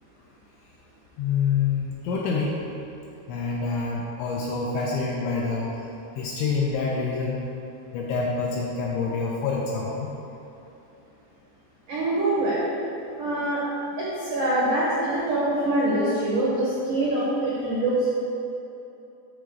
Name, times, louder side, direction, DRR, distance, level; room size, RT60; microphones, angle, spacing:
voice 1, 1.2-2.6 3.3-5.9 6.2-7.4 7.9-10.1, left 4 dB, 80° left, -3 dB, 2.7 m, -27 dB
voice 2, 11.9-12.6 13.2-13.6 14.0-18.1, right 1 dB, 85° right, -7 dB, 1.8 m, -24 dB
8.7 x 4.5 x 6.3 m, 2.9 s
omnidirectional pair, 6.0 m